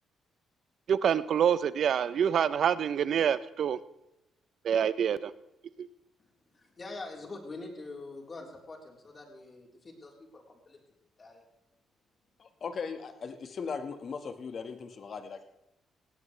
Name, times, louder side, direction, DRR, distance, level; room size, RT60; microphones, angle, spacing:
voice 1, 0.9-3.8 4.6-5.3 5.8-5.9, right 8 dB, 60° right, 16 dB, 0.7 m, -26 dB
voice 2, 6.5-10.8 11.2-11.4, left 2 dB, 35° left, 0 dB, 4.0 m, -44 dB
voice 3, 12.4-15.4, left 5 dB, 50° left, 8 dB, 1.6 m, -38 dB
18.5 x 16.5 x 3.3 m, 0.90 s
cardioid pair, 90°, 0 cm